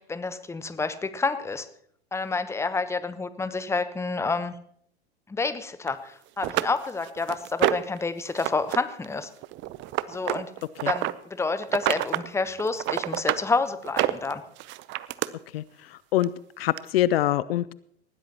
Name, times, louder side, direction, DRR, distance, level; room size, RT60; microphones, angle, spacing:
voice 1, 0.0-1.7 2.1-4.5 5.3-9.3 10.1-10.5 10.9-14.4, left 4 dB, 10° left, 13 dB, 0.9 m, -29 dB
sound 1, 5.9-6.0 6.4-8.0 8.4-8.8 9.0-11.1 11.6-12.3 12.6-13.4 13.8-15.3 16.2-16.3 16.8-16.9, right 17 dB, 35° right, 0.7 m, -27 dB
voice 2, 15.5-16.3 16.6-17.7, left 13 dB, 60° left, 19 dB, 0.6 m, -25 dB
20.0 x 15.5 x 2.9 m, 0.66 s
figure-of-eight pair, 95°, 33 cm